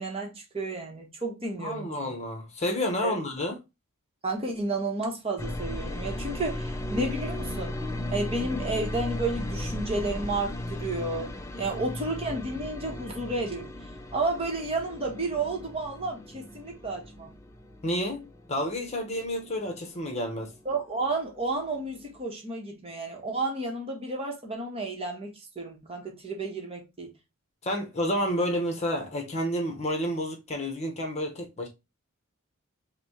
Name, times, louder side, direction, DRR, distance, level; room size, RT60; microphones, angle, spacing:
voice 1, 0.0-2.1 3.0-3.2 4.2-7.8 8.1-17.3 20.6-27.1, right 2 dB, 25° right, 1.1 m, -32 dB
voice 2, 1.6-3.6 17.8-18.2 18.5-20.5 27.6-31.7, equal, 30° left, 0.9 m, -30 dB
sound 1, 5.4-21.2 21.4-22.2, left 1 dB, 15° left, 0.4 m, -36 dB
5.9 x 2.2 x 2.9 m
head